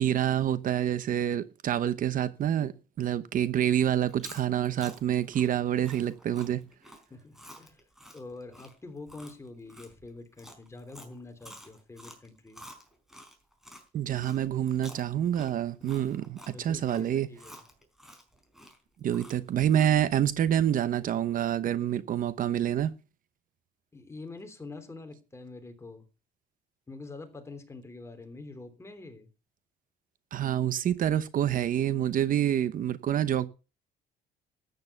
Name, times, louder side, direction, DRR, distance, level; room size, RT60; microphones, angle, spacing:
voice 1, 0.0-6.6 13.9-17.3 19.0-22.9 30.3-33.5, right 10 dB, 55° right, 0.9 m, -27 dB
Chewing mastication, 4.0-13.8 14.2-20.1, equal, ahead, 4.7 m, -50 dB
voice 2, 7.1-12.6 15.8-15.9 16.5-17.6 23.9-26.1 26.9-29.3, left 3 dB, 15° left, 3.2 m, -45 dB
13.5 x 9.6 x 5.8 m
cardioid pair, 110°, 17 cm